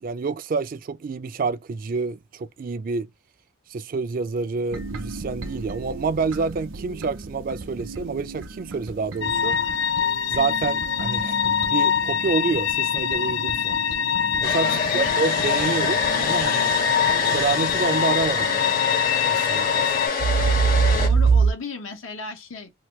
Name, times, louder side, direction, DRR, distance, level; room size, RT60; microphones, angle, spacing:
voice 1, 0.0-3.1 3.7-9.6 10.3-13.8 14.4-16.7 17.0-18.8 19.3-19.9, right 4 dB, 45° right, 0.3 m, -28 dB
sound 1, 4.7-18.4 20.2-21.5, right 5 dB, 80° right, 0.7 m, -28 dB
sound 2, 9.2-20.1, left 8 dB, 65° left, 0.4 m, -24 dB
Domestic sounds home sounds, 14.4-21.1, left 5 dB, 45° left, 0.9 m, -26 dB
voice 2, 14.6-15.1 20.9-22.7, left 4 dB, 90° left, 1.1 m, -35 dB
2.8 x 2.2 x 3.1 m
head